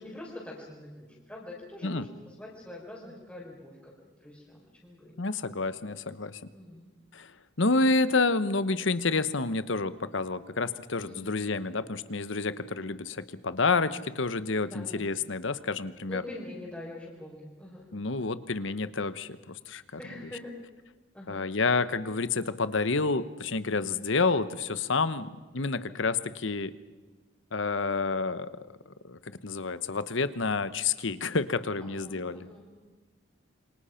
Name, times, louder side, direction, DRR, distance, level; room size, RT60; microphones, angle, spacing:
voice 1, 0.0-5.2 6.5-6.9 11.0-11.3 12.1-12.2 14.6-15.1 16.1-17.9 20.0-20.6 21.1-21.5 25.1-25.3 31.8-32.7, left 1 dB, 5° left, -7 dB, 4.3 m, -44 dB
voice 2, 5.2-6.4 7.1-7.3 7.6-16.2 17.9-19.8 21.3-26.7 27.5-28.5 28.9-32.5, left 3 dB, 70° left, 14 dB, 1.0 m, -29 dB
27.5 x 24.5 x 5.8 m, 1.3 s
head